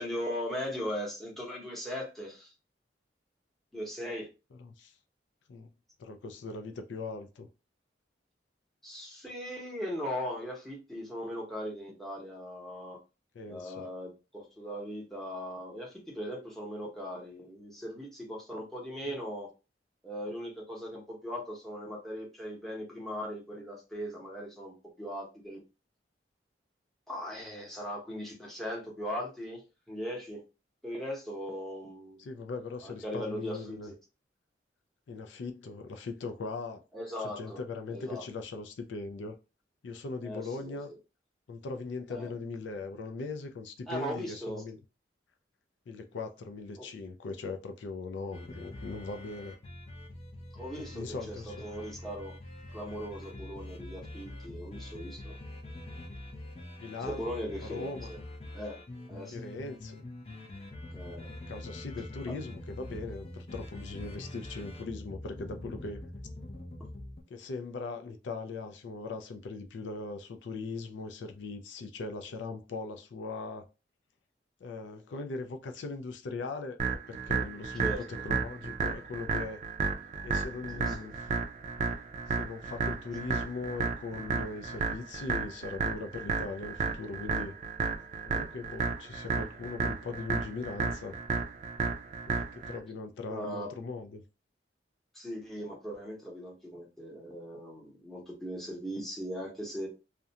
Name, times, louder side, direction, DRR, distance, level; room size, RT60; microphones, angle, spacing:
voice 1, 0.0-2.5 3.7-4.3 8.8-13.0 13.5-19.5 20.0-25.6 27.1-29.6 29.9-30.4 30.8-32.2 32.8-33.9 36.9-37.6 37.9-38.2 40.2-40.8 42.1-42.3 43.9-44.6 46.8-46.9 50.5-52.4 52.7-55.4 57.1-58.2 58.5-58.8 59.1-59.5 60.9-61.3 62.3-62.4 77.8-78.0 80.7-80.9 93.3-93.7 95.1-99.9, equal, ahead, 0.8 m, -39 dB
voice 2, 4.6-4.9 5.5-5.7 6.0-7.5 13.3-13.9 19.1-19.2 32.2-33.9 35.1-36.9 37.4-39.4 39.8-40.9 41.5-44.8 45.9-49.6 50.8-51.6 56.8-57.3 57.6-58.1 59.3-60.0 61.5-66.0 67.3-73.7 74.6-79.6 80.2-81.3 82.3-87.5 88.2-91.2 92.3-94.2, left 3 dB, 90° left, 0.4 m, -40 dB
sound 1, 48.3-67.2, left 1 dB, 35° left, 0.5 m, -44 dB
sound 2, 76.8-92.8, right 5 dB, 40° right, 0.4 m, -33 dB
2.4 x 2.1 x 2.7 m
head